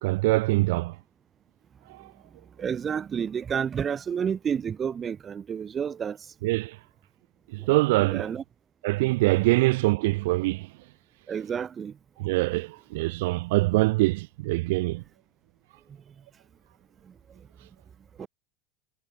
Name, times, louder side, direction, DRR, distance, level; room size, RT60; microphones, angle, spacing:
voice 1, 0.0-1.0 1.9-2.1 6.4-6.8 7.5-8.3 8.8-10.7 12.2-15.0, right 21 dB, 80° right, 0.5 m, -24 dB
voice 2, 2.6-6.2 8.1-8.4 11.3-11.9 18.2-18.3, right 7 dB, 25° right, 0.8 m, -30 dB
supercardioid pair, 145°, 0 cm